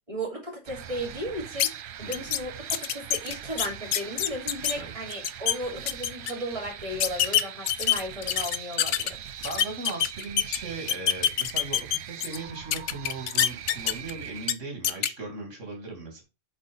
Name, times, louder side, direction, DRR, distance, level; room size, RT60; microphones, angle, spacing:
voice 1, 0.1-1.7 2.0-9.2, right 1 dB, 30° right, 3.3 m, -35 dB
sound 1, 0.7-14.5, right 9 dB, 60° right, 0.6 m, -42 dB
sound 2, 1.6-1.7 2.1-2.4 2.7-4.7 5.1-5.5 5.9-6.3 7.0-9.1 9.4-10.6 10.9-12.4 12.7-14.1 14.4-14.5 14.8-15.1, left 10 dB, 75° left, 1.0 m, -25 dB
voice 2, 9.4-16.2, right 3 dB, 85° right, 2.7 m, -38 dB
8.5 x 4.2 x 5.2 m
omnidirectional pair, 1.2 m